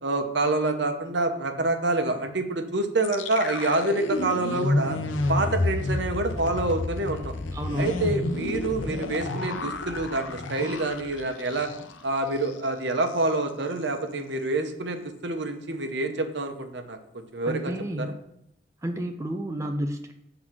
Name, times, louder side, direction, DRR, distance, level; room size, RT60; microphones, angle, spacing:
voice 1, 0.0-5.0 5.3-7.3 7.8-11.7 12.0-17.7 18.0-18.1, right 2 dB, 65° right, 6 dB, 0.9 m, -27 dB
sound 1, 3.0-12.1 12.4-12.5 12.9-13.3, left 2 dB, 85° left, 0.6 m, -30 dB
voice 2, 7.5-8.0 17.5-18.1 18.8-20.1, right 1 dB, 15° right, 4 dB, 0.4 m, -31 dB
7.6 x 3.9 x 6.1 m, 0.76 s
head